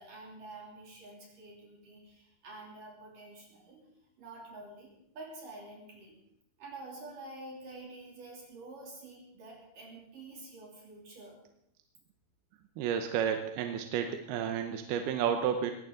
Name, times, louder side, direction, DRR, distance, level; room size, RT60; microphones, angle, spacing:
voice 1, 0.0-3.9 4.2-6.2 6.6-11.4, right 2 dB, 55° right, -2 dB, 4.6 m, -48 dB
voice 2, 12.8-15.7, right 8 dB, 75° right, 6 dB, 2.8 m, -31 dB
20.5 x 17.0 x 3.9 m, 0.77 s
omnidirectional pair, 4.6 m